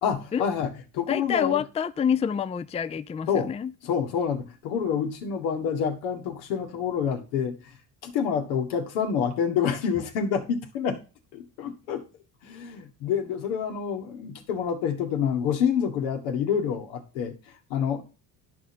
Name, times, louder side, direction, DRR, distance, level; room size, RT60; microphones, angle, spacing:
voice 1, 0.0-1.6 3.3-3.5 3.8-7.8 8.0-11.0 11.3-12.0 12.4-17.3 17.7-18.0, left 7 dB, 90° left, 1.8 m, -27 dB
voice 2, 1.1-3.7, left 8 dB, 15° left, 0.4 m, -27 dB
12.0 x 5.0 x 4.2 m
supercardioid pair, 100°, 41 cm